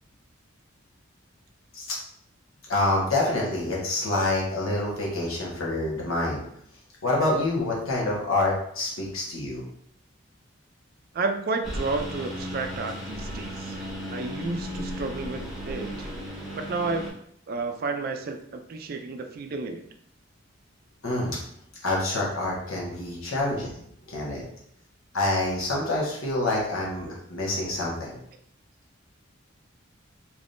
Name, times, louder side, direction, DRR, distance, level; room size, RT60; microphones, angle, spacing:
voice 1, 2.7-6.4 7.0-9.6 21.0-21.4 21.8-23.7 24.1-24.4 25.1-28.2, left 2 dB, 85° left, -4 dB, 1.2 m, -27 dB
voice 2, 11.1-13.7 14.1-16.1 16.5-17.0 17.5-19.8, right 3 dB, 45° right, 6 dB, 0.3 m, -31 dB
Engine, 11.6-17.1, equal, 5° right, 0.8 m, -35 dB
3.4 x 2.9 x 2.6 m, 0.70 s
head